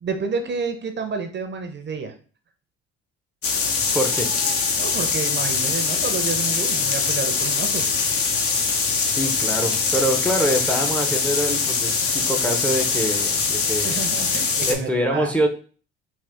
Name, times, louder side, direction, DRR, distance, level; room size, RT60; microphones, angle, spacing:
voice 1, 0.0-2.1 4.8-7.9 13.8-15.3, right 5 dB, 35° right, 6 dB, 0.7 m, -29 dB
sound 1, 3.4-14.7, left 5 dB, 50° left, 0.7 m, -23 dB
voice 2, 3.9-4.3 8.7-14.0 14.7-15.5, equal, 5° left, 4 dB, 0.6 m, -25 dB
3.7 x 2.4 x 3.4 m, 0.40 s
supercardioid pair, 70°, 30 cm